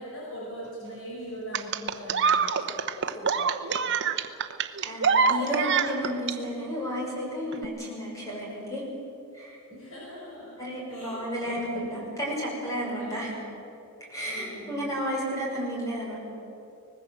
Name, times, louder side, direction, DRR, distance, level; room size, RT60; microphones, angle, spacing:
voice 1, 0.0-4.0 9.7-10.5 10.9-12.0 13.0-13.5 14.3-14.9, equal, 65° left, -5 dB, 6.5 m, -41 dB
sound 1, 1.5-6.3 7.5-7.6, right 5 dB, 55° right, 1.0 m, -25 dB
voice 2, 4.8-8.8 9.3-9.6 10.6-13.3 14.1-16.2, equal, 15° left, -4 dB, 6.4 m, -32 dB
24.5 x 20.0 x 7.6 m, 2.8 s
head